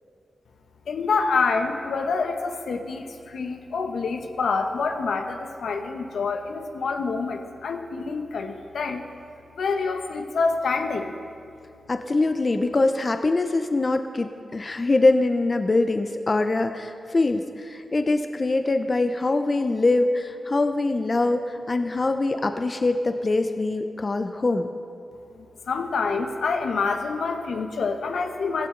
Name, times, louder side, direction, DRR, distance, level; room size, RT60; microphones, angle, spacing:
voice 1, 0.9-9.0 9.5-11.2 25.4-28.7, left 4 dB, 80° left, 5 dB, 1.0 m, -27 dB
voice 2, 11.9-24.7, left 2 dB, 35° left, 7 dB, 0.6 m, -23 dB
16.0 x 15.0 x 3.9 m, 2.5 s
cardioid pair, 85°, 0 cm